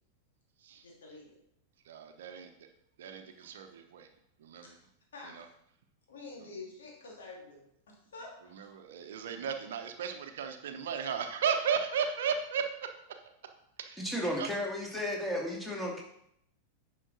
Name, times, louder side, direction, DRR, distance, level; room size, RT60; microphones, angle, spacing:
voice 1, 0.8-1.4 3.4-3.5 4.6-4.9 5.1-5.6 6.1-8.7, left 3 dB, 65° left, -2 dB, 2.5 m, -48 dB
voice 2, 1.8-2.7 3.0-4.1 4.4-4.8 5.2-5.4 8.5-12.6 13.8-14.5, right 7 dB, 60° right, 6 dB, 0.9 m, -35 dB
voice 3, 14.0-16.0, left 1 dB, 5° left, -2 dB, 2.4 m, -34 dB
9.9 x 5.6 x 4.0 m, 0.74 s
figure-of-eight pair, 90°, 0 cm